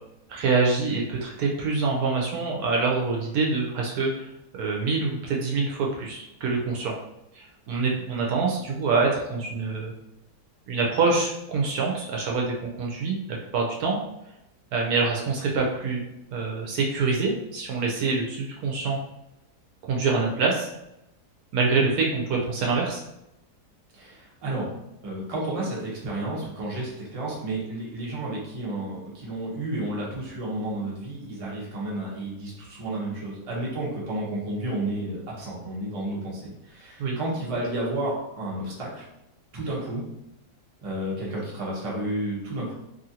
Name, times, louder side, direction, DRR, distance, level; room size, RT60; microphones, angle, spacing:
voice 1, 0.3-7.0 7.3-9.9 10.7-14.0 14.7-16.0 16.3-19.0 19.9-20.7 21.5-23.0 37.0-37.2, right 4 dB, 70° right, -2 dB, 1.0 m, -25 dB
voice 2, 23.9-24.7 25.0-39.0 39.5-40.0 40.8-42.7, right 1 dB, 35° right, -5 dB, 0.6 m, -31 dB
2.9 x 2.5 x 2.7 m, 0.86 s
omnidirectional pair, 1.7 m